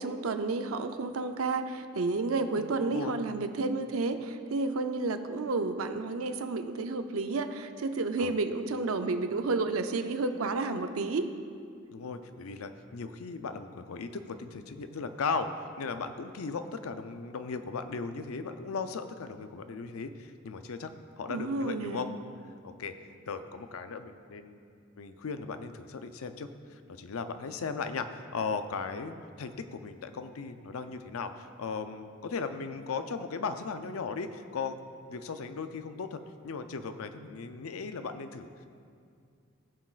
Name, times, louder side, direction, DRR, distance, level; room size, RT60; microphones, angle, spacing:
voice 1, 0.0-11.3 21.3-22.1, right 3 dB, 85° right, 8 dB, 0.6 m, -31 dB
voice 2, 2.6-3.2 8.2-8.3 11.9-22.1 22.6-22.9 23.3-24.6 25.0-34.8 35.1-38.5, left 4 dB, 90° left, 9 dB, 0.5 m, -37 dB
17.0 x 6.2 x 2.4 m, 2.3 s
head